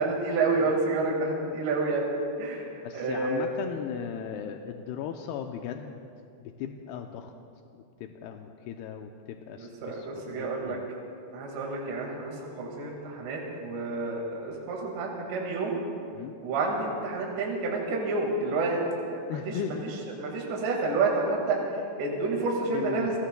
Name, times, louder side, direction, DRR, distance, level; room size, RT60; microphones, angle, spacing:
voice 1, 0.0-2.1 2.4-3.5 9.6-10.8 11.3-15.8 16.4-18.8 19.1-19.8 20.2-21.6 22.0-23.1, right 3 dB, 75° right, -1 dB, 4.2 m, -29 dB
voice 2, 2.8-6.1 6.4-7.3 7.7-10.9 14.5-14.6 16.1-16.4 19.3-19.8 22.7-23.1, left 9 dB, 80° left, 3 dB, 2.4 m, -37 dB
29.5 x 21.0 x 2.3 m, 2.5 s
omnidirectional pair, 5.1 m